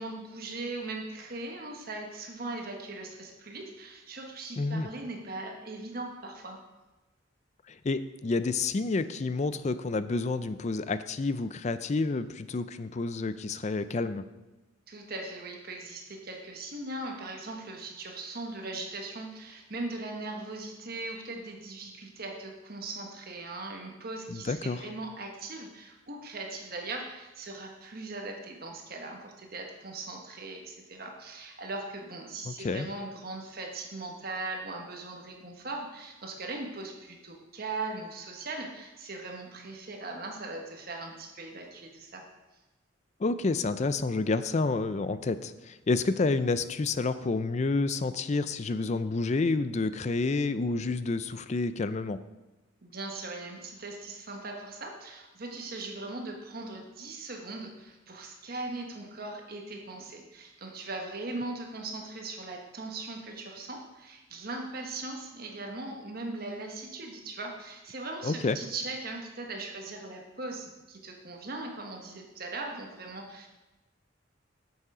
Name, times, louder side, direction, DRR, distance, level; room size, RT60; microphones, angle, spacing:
voice 1, 0.0-6.6 14.9-42.2 52.8-73.5, right 2 dB, 50° right, 2 dB, 1.3 m, -39 dB
voice 2, 4.6-4.9 7.7-14.2 24.3-24.8 32.5-32.9 43.2-52.2 68.2-68.6, left 3 dB, 35° left, 13 dB, 0.4 m, -29 dB
8.9 x 7.0 x 4.9 m, 1.1 s
head